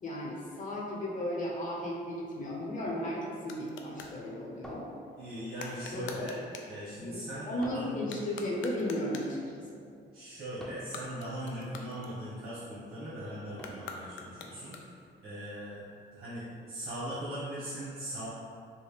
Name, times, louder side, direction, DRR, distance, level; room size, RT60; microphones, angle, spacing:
voice 1, 0.0-4.9 5.9-6.3 7.0-9.9, left 1 dB, 40° left, -3 dB, 0.9 m, -35 dB
sound 1, 3.0-4.2 5.5-6.8 8.0-9.4 10.8-12.6 13.5-15.2, left 4 dB, 75° left, 0.4 m, -46 dB
sound 2, 4.6-5.5 7.6-8.1 10.6-11.0 13.6-14.0, equal, 5° left, 0.6 m, -48 dB
voice 2, 5.2-6.4 6.6-8.0 10.1-14.8 15.2-15.8 16.1-18.3, equal, 50° right, -12 dB, 1.4 m, -40 dB
4.4 x 2.2 x 3.4 m, 2.2 s
cardioid pair, 90°, 20 cm